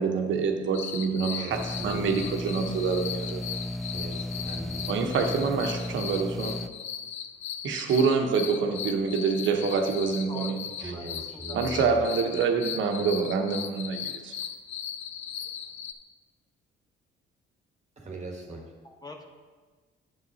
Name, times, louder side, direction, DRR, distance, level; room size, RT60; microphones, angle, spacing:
voice 1, 0.0-3.4 4.9-6.6 7.6-10.9 11.5-14.3, right 5 dB, 75° right, 4 dB, 1.1 m, -26 dB
sound 1, 0.7-15.9, left 8 dB, 75° left, 0.6 m, -38 dB
voice 2, 1.1-2.2 3.9-4.9 10.8-11.9 18.0-18.6, right 2 dB, 35° right, 0 dB, 1.4 m, -40 dB
sound 2, 1.5-6.7, left 1 dB, ahead, 0.4 m, -35 dB
voice 3, 10.3-10.6 10.9-12.0 12.4-13.2 13.6-13.7 18.8-19.3, left 2 dB, 20° left, 3 dB, 1.1 m, -46 dB
8.8 x 7.5 x 4.1 m, 1.4 s
cardioid pair, 90°, 20 cm